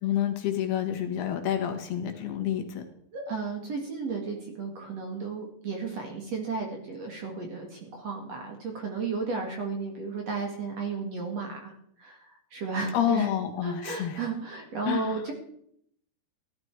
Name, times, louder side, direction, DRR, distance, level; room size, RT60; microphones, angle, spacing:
voice 1, 0.0-2.8 12.9-14.2 14.9-15.2, left 10 dB, 70° left, 5 dB, 3.4 m, -28 dB
voice 2, 3.1-13.3 13.6-15.3, right 4 dB, 45° right, 2 dB, 2.6 m, -34 dB
15.0 x 12.5 x 4.7 m, 0.69 s
omnidirectional pair, 4.7 m